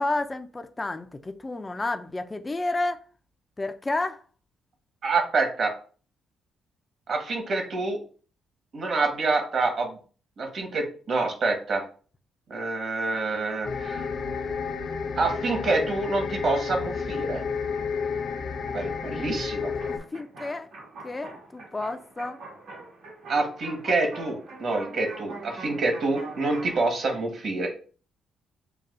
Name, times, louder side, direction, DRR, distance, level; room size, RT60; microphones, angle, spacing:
voice 1, 0.0-3.0 3.6-4.2 19.9-20.7 21.0-22.4, left 2 dB, 20° left, 0.5 m, -31 dB
voice 2, 5.0-5.7 7.1-8.0 8.7-10.0 10.4-11.8 12.5-14.1 15.2-17.4 18.7-19.7 23.3-27.7, right 3 dB, 55° right, 1.5 m, -27 dB
sound 1, 13.6-20.0, left 5 dB, 55° left, 0.7 m, -31 dB
sound 2, 19.8-26.8, right 2 dB, 80° right, 2.1 m, -43 dB
6.6 x 2.3 x 2.6 m
cardioid pair, 90°, 0 cm